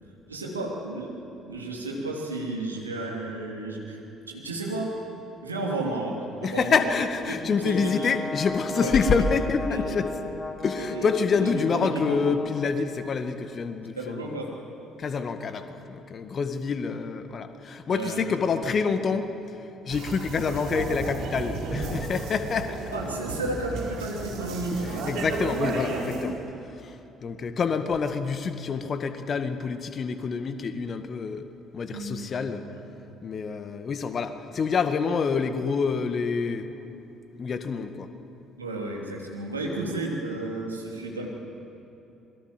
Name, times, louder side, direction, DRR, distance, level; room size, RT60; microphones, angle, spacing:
voice 1, 0.3-1.1 1.4-4.0 4.3-4.9 5.4-6.8 7.3-8.1 8.8-8.9 9.7-10.0 10.8-11.1 11.4-11.5 11.7-12.2 14.0-14.5 17.9-18.3 22.9-25.2 31.9-32.3 32.7-32.8 38.6-41.3, right 2 dB, 85° right, -1 dB, 3.1 m, -32 dB
voice 2, 6.4-10.1 10.6-14.3 15.0-22.8 24.8-31.5 31.7-32.6 33.2-36.7 37.4-38.1, left 5 dB, 40° left, 9 dB, 1.8 m, -27 dB
Brass instrument, 7.6-12.8, left 2 dB, 20° left, 2.8 m, -36 dB
sound 1, 19.9-26.2, right 3 dB, 60° right, 4.4 m, -33 dB
27.0 x 22.0 x 7.7 m, 3.0 s
figure-of-eight pair, 50°, 0 cm